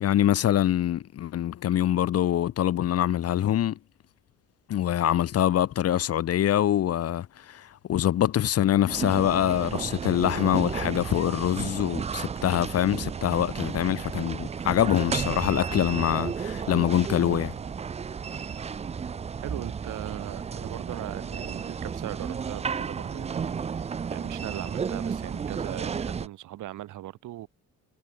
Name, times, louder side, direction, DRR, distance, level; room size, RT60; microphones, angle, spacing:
voice 1, 0.0-3.8 4.7-17.5, left 11 dB, 55° left, 0.7 m, -24 dB
sound 1, 8.9-26.3, right 6 dB, 20° right, 0.4 m, -33 dB
sound 2, 15.2-25.4, right 7 dB, 50° right, 4.7 m, -59 dB
voice 2, 19.4-23.6 24.1-27.5, right 14 dB, 85° right, 2.9 m, -39 dB
cardioid pair, 90°, 30 cm